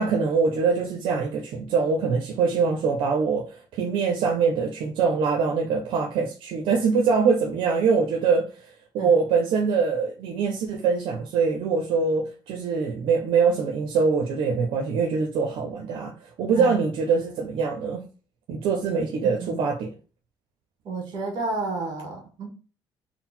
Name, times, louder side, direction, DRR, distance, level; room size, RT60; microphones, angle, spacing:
voice 1, 0.0-8.7 8.9-18.1 18.5-19.9, right 5 dB, 80° right, 0.6 m, -23 dB
voice 2, 16.6-16.9 19.4-19.6 20.8-22.5, right 3 dB, 55° right, 1.8 m, -31 dB
3.9 x 2.1 x 4.3 m
cardioid pair, 150°, 9 cm